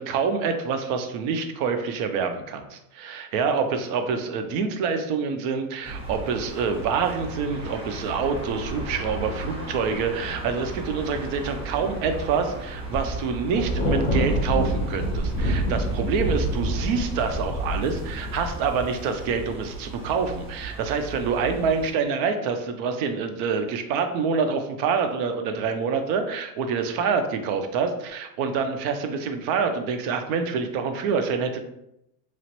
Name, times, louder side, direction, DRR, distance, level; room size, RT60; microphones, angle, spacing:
voice 1, 0.0-31.6, right 5 dB, 60° right, 7 dB, 0.6 m, -26 dB
sound 1, 5.8-21.9, right 2 dB, 15° right, 0.7 m, -35 dB
Thunder, 13.5-18.9, equal, 25° left, 0.5 m, -27 dB
3.0 x 2.4 x 2.9 m, 0.81 s
supercardioid pair, 140°, 46 cm